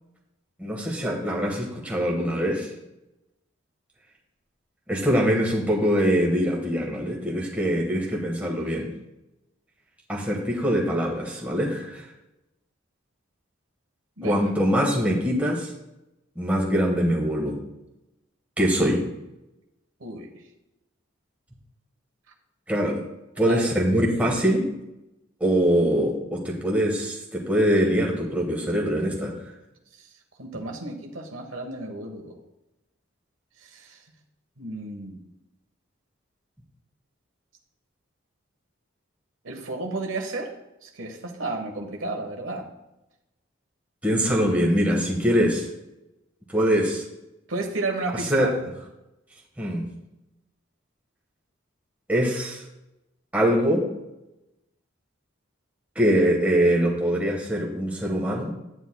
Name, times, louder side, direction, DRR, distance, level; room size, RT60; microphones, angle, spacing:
voice 1, 0.6-2.7 4.9-8.9 10.1-12.1 14.2-15.7 16.4-17.6 18.6-19.0 22.7-23.0 23.4-24.7 25.4-29.3 44.0-45.7 46.5-47.0 48.3-48.5 49.6-49.9 52.1-52.6 53.3-53.8 55.9-58.5, equal, 5° right, -2 dB, 1.3 m, -23 dB
voice 2, 20.0-20.3 23.4-23.7 30.4-32.4 33.6-34.0 34.6-35.2 39.4-40.5 40.8-42.7 47.5-48.5, right 2 dB, 80° right, 2 dB, 1.2 m, -32 dB
9.6 x 9.4 x 2.2 m, 0.93 s
head